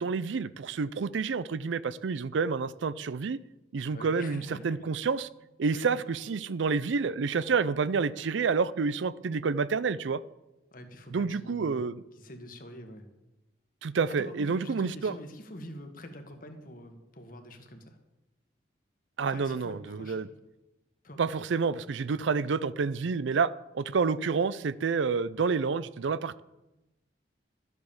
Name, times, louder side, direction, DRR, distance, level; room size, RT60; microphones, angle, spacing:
voice 1, 0.0-3.4 3.7-5.3 5.6-10.2 11.1-12.0 13.8-15.1 19.2-20.3 21.2-26.4, right 5 dB, 80° right, 0.4 m, -29 dB
voice 2, 3.9-4.8 5.7-6.0 6.8-7.1 10.7-11.8 12.1-13.1 14.2-18.0 19.3-20.3 21.0-21.2, left 1 dB, 45° left, 1.6 m, -45 dB
12.5 x 8.1 x 7.0 m
head